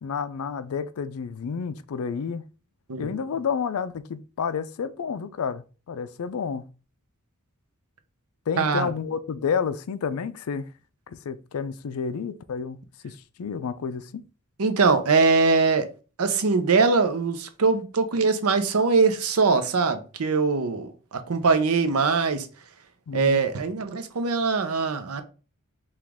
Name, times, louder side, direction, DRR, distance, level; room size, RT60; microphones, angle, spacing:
voice 1, 0.0-2.4 3.0-6.7 8.5-10.7 11.1-14.2 23.1-23.4, left 6 dB, 75° left, 0.4 m, -30 dB
voice 2, 8.6-8.9 14.6-15.9 16.2-22.5 23.1-25.2, right 4 dB, 80° right, 0.7 m, -22 dB
4.9 x 2.4 x 3.5 m
head